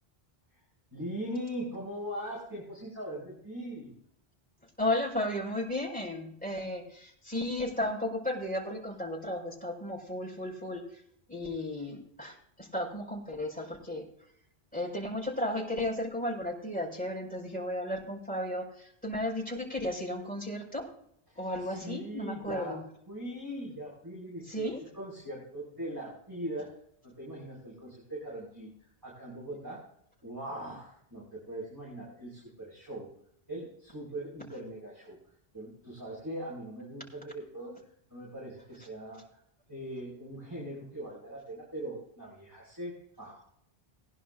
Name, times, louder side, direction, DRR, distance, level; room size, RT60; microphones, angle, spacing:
voice 1, 0.9-4.0 21.3-22.8 23.1-26.8 27.0-28.7 29.0-29.8 30.2-33.1 33.5-35.2 35.5-37.8 38.1-39.4 39.7-43.4, right 1 dB, 20° right, -7 dB, 5.4 m, -40 dB
voice 2, 4.8-11.0 11.3-14.1 14.7-20.9 21.3-22.8 24.5-24.8, left 1 dB, 10° left, -3 dB, 5.0 m, -34 dB
20.5 x 11.0 x 2.5 m, 0.70 s
omnidirectional pair, 1.0 m